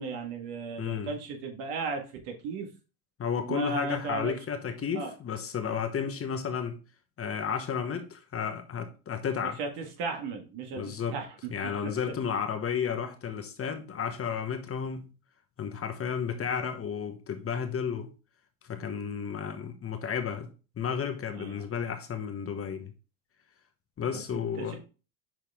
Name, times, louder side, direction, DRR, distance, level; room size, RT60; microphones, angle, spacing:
voice 1, 0.0-2.7 3.5-4.3 4.9-5.1 9.6-11.5 11.8-11.9 21.4-21.6 24.3-24.8, right 4 dB, 65° right, 1.8 m, -35 dB
voice 2, 0.8-1.2 3.2-6.8 7.2-9.6 10.7-11.2 11.5-15.1 15.6-18.1 18.6-20.5 20.8-22.9 24.0-24.8, left 7 dB, 30° left, 1.0 m, -32 dB
5.9 x 4.5 x 3.6 m
supercardioid pair, 95°, 44 cm